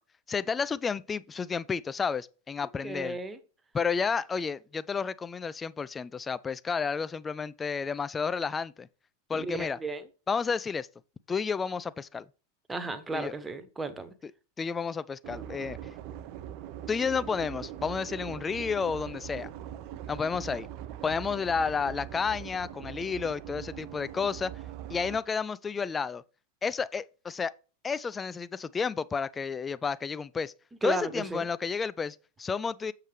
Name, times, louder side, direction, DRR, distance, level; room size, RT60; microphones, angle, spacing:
voice 1, 0.3-3.2 3.7-8.9 9.3-9.8 10.3-10.9 11.3-12.3 13.1-13.3 14.6-15.8 16.9-19.5 20.1-20.7 21.0-24.5 24.9-26.2 26.6-27.5 27.8-30.5 30.8-32.9, left 5 dB, 15° left, 0.4 m, -31 dB
voice 2, 2.8-3.4 9.3-10.0 12.7-14.1 30.8-31.5, right 3 dB, 10° right, 1.0 m, -34 dB
sound 1, 15.2-25.2, right 11 dB, 40° right, 0.5 m, -42 dB
7.3 x 6.6 x 3.2 m
figure-of-eight pair, 90°, 0 cm